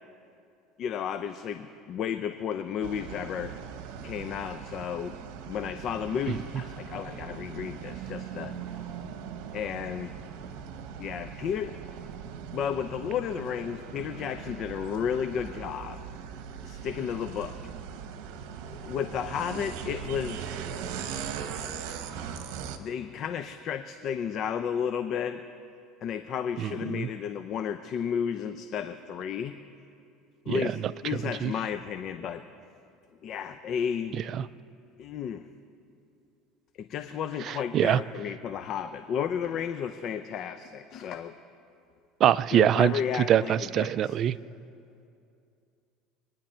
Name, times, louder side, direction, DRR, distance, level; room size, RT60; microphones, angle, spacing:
voice 1, 0.8-3.5 4.0-5.2 5.5-8.5 9.5-10.1 11.0-11.8 12.5-16.0 16.6-17.6 18.8-20.7 22.8-25.4 26.0-29.6 30.5-32.4 33.2-34.2 35.0-35.4 36.8-41.3 42.5-44.2, left 8 dB, 50° left, 9 dB, 0.6 m, -33 dB
sound 1, 2.8-22.8, right 7 dB, 70° right, 1.1 m, -40 dB
voice 2, 26.6-27.1 30.5-30.7 31.4-31.5 34.4-34.5 37.5-38.0 42.2-42.9 43.3-44.4, right 10 dB, 45° right, 17 dB, 0.4 m, -24 dB
24.5 x 10.0 x 4.5 m, 2.5 s
supercardioid pair, 115°, 0 cm